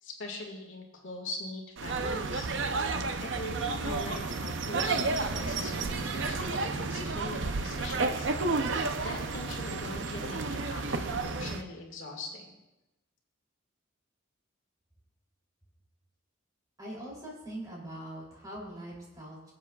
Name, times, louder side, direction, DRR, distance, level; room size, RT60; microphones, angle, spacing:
voice 1, 0.0-2.5 3.2-8.3 9.0-12.5, left 2 dB, 70° left, 0 dB, 1.9 m, -42 dB
sound 1, 1.8-11.6, right 3 dB, 60° right, 0.6 m, -31 dB
voice 2, 16.8-19.5, right 1 dB, 20° right, -4 dB, 3.1 m, -42 dB
22.0 x 7.5 x 2.4 m, 0.98 s
head